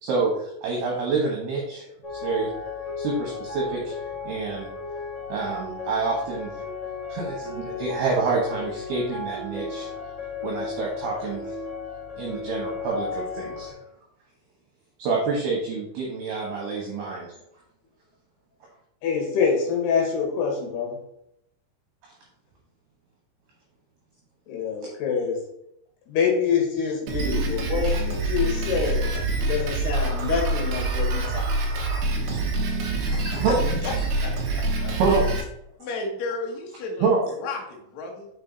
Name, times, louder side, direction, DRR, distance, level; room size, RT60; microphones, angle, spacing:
voice 1, 0.0-1.9 2.2-2.5 3.0-4.0 4.2-4.7 5.3-6.6 7.1-9.9 10.4-11.5 12.2-13.8 15.0-17.3 22.0-22.1 24.8-24.9 32.3-32.4 33.1-33.6 35.0-35.2 37.0-37.2, right 4 dB, 65° right, -2 dB, 2.8 m, -27 dB
sound 1, 2.0-13.7, left 4 dB, 15° left, 1.4 m, -34 dB
voice 2, 19.0-21.0 24.5-25.4 26.1-29.1 29.5-31.5, left 6 dB, 65° left, 0 dB, 3.4 m, -26 dB
Drum kit, 27.1-35.4, right 2 dB, 85° right, 1.7 m, -26 dB
voice 3, 33.1-33.6 33.8-33.9 34.2-34.9 35.8-38.3, left 3 dB, 85° left, 0 dB, 1.6 m, -33 dB
6.5 x 5.6 x 4.0 m, 0.77 s
omnidirectional pair, 5.6 m